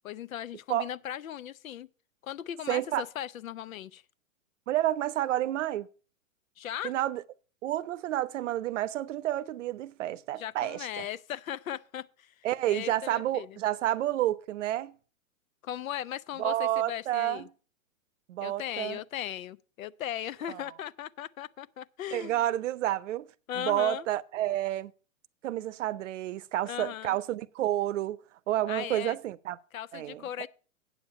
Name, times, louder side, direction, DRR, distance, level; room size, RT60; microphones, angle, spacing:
voice 1, 0.0-1.9 2.2-4.0 6.6-6.9 10.3-13.6 15.6-17.5 18.4-22.4 23.5-24.1 26.6-27.2 28.7-29.2 29.7-30.5, left 11 dB, 75° left, 0.7 m, -38 dB
voice 2, 2.7-3.0 4.7-5.9 6.8-7.2 7.6-11.1 12.4-15.0 16.4-17.4 18.3-19.0 20.5-20.6 22.1-23.3 23.6-24.9 25.4-28.2 28.5-29.6 29.9-30.2, right 13 dB, 60° right, 0.7 m, -30 dB
8.7 x 7.2 x 5.5 m
hypercardioid pair, 125°, 41 cm